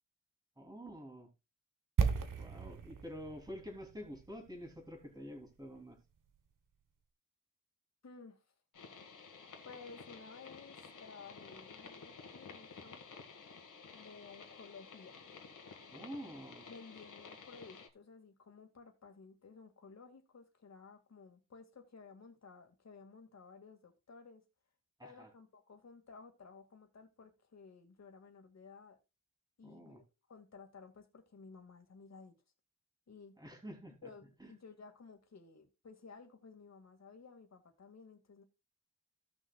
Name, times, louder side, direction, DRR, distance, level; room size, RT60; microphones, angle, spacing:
voice 1, 0.6-1.3 2.4-6.0 15.9-16.7 25.0-25.3 29.6-30.0 33.4-34.1 34.4-34.5, equal, 15° right, 3.1 m, -48 dB
sound 1, 2.0-5.9 6.2-6.3, right 6 dB, 90° right, 1.2 m, -36 dB
voice 2, 8.0-8.4 9.6-13.0 13.9-15.1 16.7-24.4 25.0-29.0 29.6-30.0 30.3-32.3 33.1-33.3 34.0-38.4, left 4 dB, 60° left, 2.1 m, -55 dB
sound 2, 8.7-17.9, left 5 dB, 80° left, 1.9 m, -53 dB
16.0 x 6.3 x 2.3 m
wide cardioid pair, 130°, 31 cm